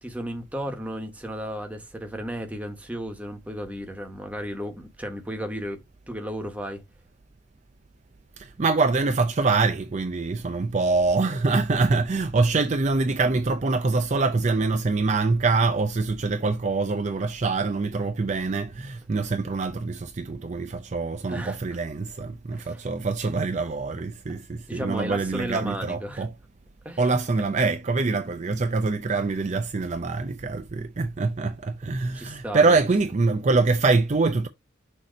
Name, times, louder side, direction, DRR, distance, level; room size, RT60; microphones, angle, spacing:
voice 1, 0.0-5.8 6.1-6.8 21.3-21.6 22.5-22.8 24.7-26.3 26.8-27.1 32.1-32.8, equal, 5° right, 1.1 m, -34 dB
voice 2, 8.4-26.3 27.0-34.5, right 3 dB, 35° right, 0.5 m, -24 dB
6.4 x 2.9 x 5.0 m
head